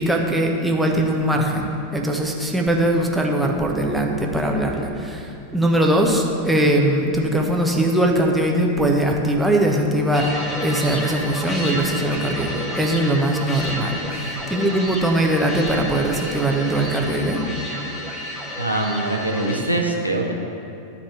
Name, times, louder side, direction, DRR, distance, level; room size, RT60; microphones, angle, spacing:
voice 1, 0.0-10.3 10.6-17.4, right 1 dB, 5° right, 0 dB, 1.2 m, -21 dB
sound 1, 10.1-19.6, equal, 15° left, 1.9 m, -31 dB
voice 2, 18.6-20.3, right 2 dB, 85° left, 1 dB, 1.2 m, -23 dB
12.5 x 4.3 x 7.7 m, 2.6 s
figure-of-eight pair, 90°, 0 cm